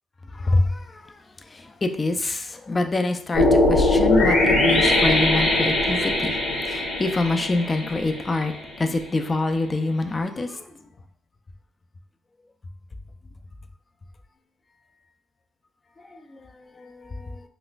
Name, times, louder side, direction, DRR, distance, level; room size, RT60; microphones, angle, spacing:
voice 1, 0.4-1.0 1.5-6.3 6.7-10.6 16.1-16.2 16.8-17.4, left 2 dB, 25° left, 7 dB, 0.4 m, -26 dB
sound 1, 3.3-8.5, left 2 dB, 85° left, 1.3 m, -20 dB
3.9 x 2.4 x 2.3 m, 0.63 s
cardioid pair, 90°, 0 cm